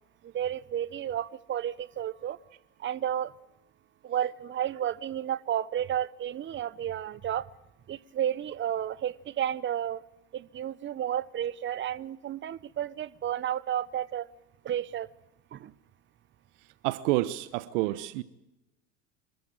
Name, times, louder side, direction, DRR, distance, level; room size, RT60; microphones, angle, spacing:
voice 1, 0.3-2.4 2.8-3.3 4.0-7.4 7.9-10.0 10.3-14.3 14.6-15.1 15.5-15.7, right 10 dB, 30° right, 19 dB, 1.0 m, -32 dB
voice 2, 16.8-18.2, right 17 dB, 70° right, 16 dB, 1.1 m, -28 dB
26.5 x 14.5 x 8.8 m, 0.93 s
supercardioid pair, 105°, 37 cm